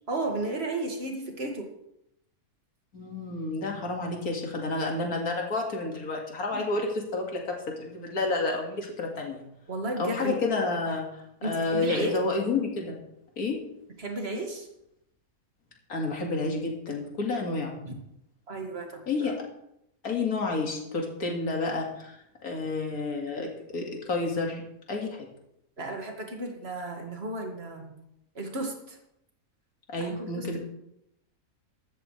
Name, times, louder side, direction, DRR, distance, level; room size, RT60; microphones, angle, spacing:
voice 1, 0.1-1.7 6.5-6.6 9.7-10.4 11.4-12.1 14.0-14.7 17.8-17.9 18.5-19.3 25.8-27.9 28.4-29.0 30.0-30.6, right 2 dB, 45° right, 2 dB, 2.2 m, -33 dB
voice 2, 2.9-9.4 10.0-11.1 11.4-13.0 13.4-13.6 15.9-17.8 19.1-19.5 20.0-24.6 24.9-25.3 29.9-30.6, left 3 dB, 85° left, 1 dB, 2.5 m, -30 dB
14.0 x 13.0 x 3.3 m, 0.80 s
omnidirectional pair, 1.5 m